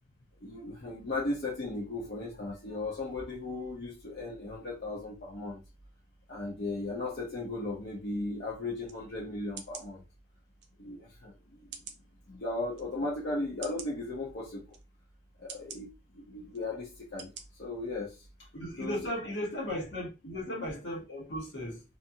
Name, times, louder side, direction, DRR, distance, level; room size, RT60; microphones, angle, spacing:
voice 1, 0.4-5.6 6.3-10.0 10.8-11.8 12.3-14.8 15.4-17.3 17.6-18.3 18.8-19.0, left 2 dB, 60° left, 0.6 m, -36 dB
sound 1, 8.8-9.0 9.6-9.9 10.6-10.7 11.7-12.0 12.7-12.8 13.6-13.9 14.7-14.8 15.5-15.8 16.5-16.6 17.2-17.4 17.9-18.0, right 7 dB, 70° right, 0.5 m, -44 dB
voice 2, 18.5-21.8, left 1 dB, 80° left, 1.3 m, -36 dB
2.5 x 2.5 x 2.7 m
head